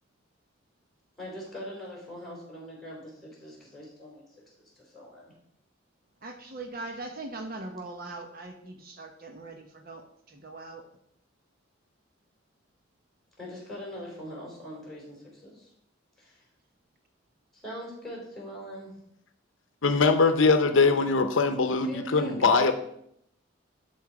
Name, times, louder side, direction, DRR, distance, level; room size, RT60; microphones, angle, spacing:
voice 1, 1.2-4.2 4.6-5.3 13.4-15.7 16.2-16.4 17.5-19.0 21.7-22.7, equal, ahead, -4 dB, 4.0 m, -42 dB
voice 2, 6.2-10.9, right 2 dB, 50° right, 4 dB, 0.9 m, -41 dB
voice 3, 19.8-22.7, left 4 dB, 70° left, 9 dB, 0.7 m, -22 dB
12.0 x 4.5 x 4.7 m, 0.72 s
head